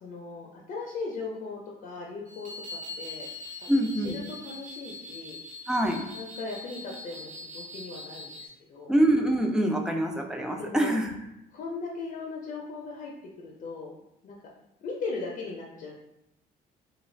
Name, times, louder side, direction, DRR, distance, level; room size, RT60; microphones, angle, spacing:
voice 1, 0.0-3.3 3.6-5.4 6.1-7.3 7.5-8.9 10.6-11.0 11.5-13.1 13.4-13.9 14.2-14.4 14.8-15.9, left 4 dB, 55° left, -2 dB, 0.5 m, -38 dB
sound 1, 2.3-8.5, left 2 dB, 45° right, 1.1 m, -42 dB
voice 2, 3.7-4.2 5.7-6.0 8.9-11.1, right 1 dB, 5° right, 2 dB, 0.4 m, -25 dB
2.4 x 2.3 x 3.2 m, 0.85 s
cardioid pair, 110°, 17 cm